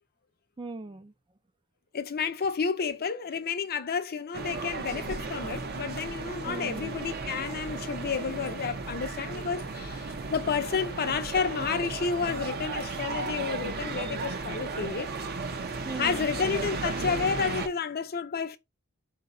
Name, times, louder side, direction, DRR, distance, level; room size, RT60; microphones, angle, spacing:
voice 1, 0.6-1.1 6.4-7.0 15.4-16.3, right 3 dB, 20° right, 0.4 m, -40 dB
voice 2, 1.9-15.1 16.0-18.6, left 5 dB, 45° left, 0.6 m, -31 dB
sound 1, 4.3-17.7, right 3 dB, 45° right, 0.7 m, -35 dB
4.7 x 2.8 x 3.8 m
head